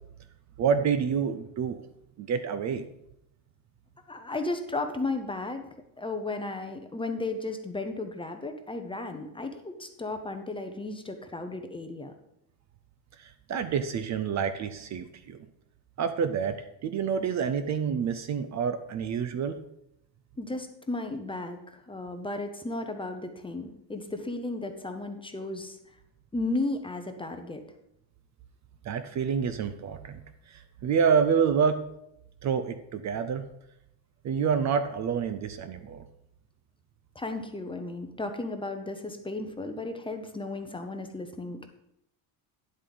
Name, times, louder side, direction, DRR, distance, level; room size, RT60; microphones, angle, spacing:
voice 1, 0.6-1.8 2.2-2.9 13.2-15.4 16.0-19.6 28.8-30.2 30.5-31.8 32.4-33.4 34.2-36.0, right 6 dB, 35° right, 10 dB, 0.6 m, -28 dB
voice 2, 4.1-12.1 20.4-25.8 26.3-27.6 37.1-41.8, left 2 dB, 10° left, 6 dB, 0.7 m, -34 dB
10.0 x 7.9 x 4.0 m, 0.80 s
cardioid pair, 135°, 48 cm